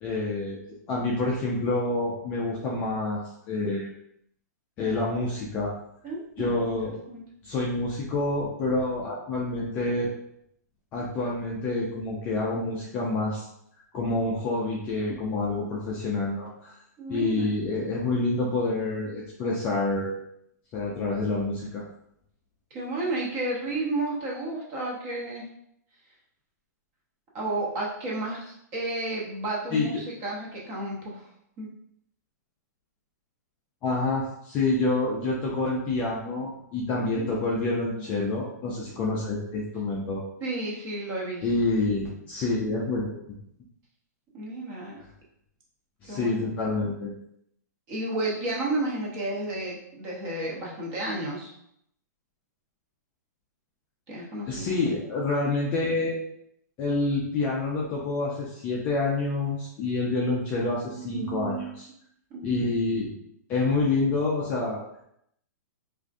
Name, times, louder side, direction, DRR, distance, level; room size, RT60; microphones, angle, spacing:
voice 1, 0.0-0.6 0.9-3.9 4.8-5.7 6.4-7.0 7.4-10.1 10.9-13.5 13.9-16.7 17.1-20.1 20.7-21.8 29.7-29.9 33.8-40.2 41.4-43.2 45.0-45.1 46.0-47.1 54.5-56.2 56.8-61.9 62.4-63.1 63.5-65.0, left 2 dB, 15° left, -4 dB, 0.4 m, -27 dB
voice 2, 6.0-6.6 7.1-7.2 17.0-17.5 22.7-25.5 27.3-31.3 31.6-31.7 36.9-37.6 38.0-38.3 40.4-41.5 44.3-45.0 46.1-46.6 47.9-51.5 54.1-54.8 60.9-61.7 62.3-62.6, right 2 dB, 25° right, -4 dB, 0.7 m, -32 dB
3.4 x 2.5 x 2.5 m, 0.74 s
hypercardioid pair, 170°, 10 cm